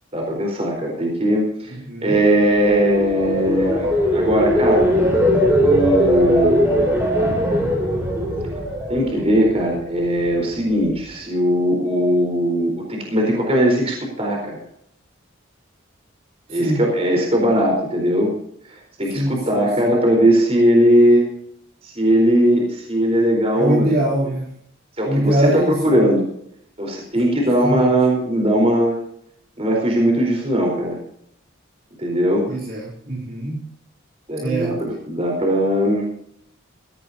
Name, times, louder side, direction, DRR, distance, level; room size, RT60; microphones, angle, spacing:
voice 1, 0.1-1.7 2.0-4.9 5.6-7.0 8.9-14.6 16.5-18.3 19.0-21.3 21.8-23.9 25.0-26.2 26.8-29.0 29.6-31.0 32.0-32.5 34.3-36.1, equal, 30° right, 0 dB, 4.2 m, -19 dB
voice 2, 1.7-2.2 16.5-16.8 19.1-19.9 23.5-24.5 25.0-26.1 27.4-27.9 32.5-33.7 34.4-34.8, right 1 dB, 45° right, -3 dB, 3.4 m, -23 dB
sound 1, 2.5-9.7 10.1-10.5, equal, 15° right, 5.8 m, -20 dB
17.0 x 17.0 x 2.8 m, 0.69 s
head